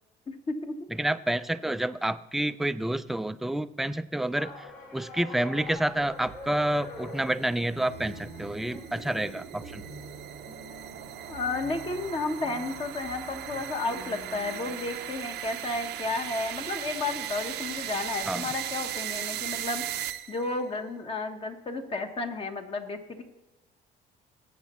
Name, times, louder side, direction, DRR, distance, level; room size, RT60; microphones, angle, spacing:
voice 1, 1.0-9.8 18.3-18.5, right 1 dB, ahead, 12 dB, 0.3 m, -29 dB
sound 1, 4.4-18.3, left 3 dB, 60° left, 4.1 m, -49 dB
sound 2, 5.8-20.6, right 12 dB, 80° right, 0.7 m, -38 dB
sound 3, 7.9-14.7, right 1 dB, 90° left, 3.4 m, -47 dB
voice 2, 11.3-23.2, left 3 dB, 35° left, 5 dB, 1.2 m, -32 dB
17.5 x 8.1 x 3.1 m, 1.1 s
cardioid pair, 110°, 17 cm